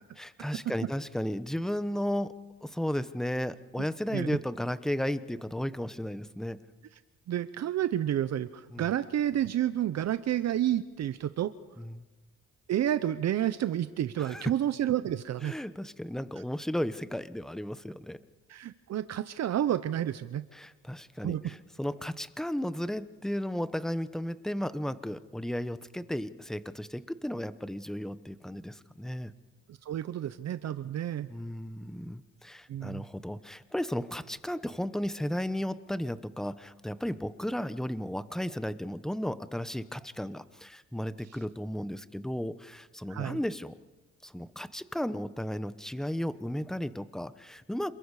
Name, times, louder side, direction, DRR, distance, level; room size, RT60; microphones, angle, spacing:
voice 1, 0.2-6.6 8.7-8.9 11.8-12.0 14.2-14.4 15.4-18.2 20.5-29.3 31.3-43.7 44.2-47.9, equal, ahead, 13 dB, 0.9 m, -34 dB
voice 2, 7.3-11.5 12.7-15.5 18.5-20.4 21.2-21.4 29.7-31.3 32.7-33.0 43.1-43.4, right 11 dB, 60° right, 13 dB, 0.8 m, -30 dB
28.0 x 21.5 x 4.9 m, 1.2 s
cardioid pair, 90°, 30 cm